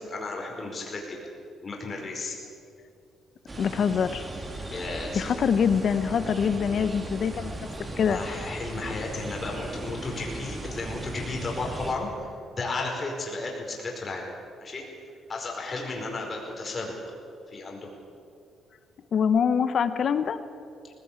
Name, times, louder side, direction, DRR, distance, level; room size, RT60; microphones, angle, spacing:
voice 1, 0.1-1.2 1.6-2.3 4.7-5.2 8.1-12.3 12.6-14.2 14.6-14.8 15.3-16.9 17.5-17.8, left 3 dB, 35° left, 0 dB, 4.9 m, -33 dB
sound 1, 3.5-11.9, right 1 dB, 25° right, 3.4 m, -37 dB
voice 2, 3.6-4.3 5.1-7.7 8.0-8.2 19.1-20.4, left 7 dB, 55° left, 12 dB, 0.9 m, -24 dB
19.0 x 16.5 x 8.8 m, 2.5 s
cardioid pair, 90°, 0 cm